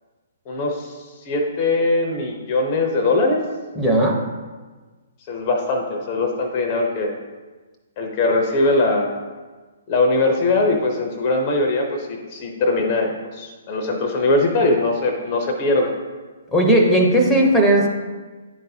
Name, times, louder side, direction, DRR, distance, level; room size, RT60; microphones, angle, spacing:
voice 1, 0.5-3.4 5.3-7.1 8.0-9.1 9.9-15.9, left 2 dB, 35° left, 2 dB, 0.7 m, -21 dB
voice 2, 3.8-4.1 16.5-17.9, right 1 dB, 5° left, 1 dB, 0.9 m, -16 dB
10.0 x 3.9 x 2.8 m, 1.3 s
figure-of-eight pair, 125°, 0 cm